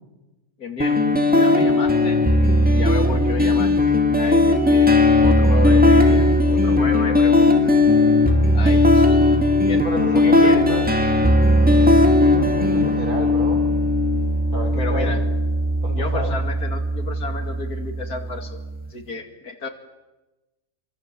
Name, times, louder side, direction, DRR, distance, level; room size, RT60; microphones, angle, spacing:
voice 1, 0.6-1.1 1.3-2.2 2.7-7.7 8.5-9.2 9.6-10.6 14.7-15.2 15.9-18.6 18.9-19.7, left 4 dB, 85° left, 5 dB, 3.2 m, -32 dB
sound 1, 0.8-18.8, left 2 dB, 5° right, 2.3 m, -17 dB
voice 2, 9.8-10.9 12.3-13.7 14.5-15.1 15.8-16.4, right 1 dB, 75° right, 1 dB, 7.1 m, -30 dB
26.5 x 24.5 x 7.7 m, 1.1 s
omnidirectional pair, 1.6 m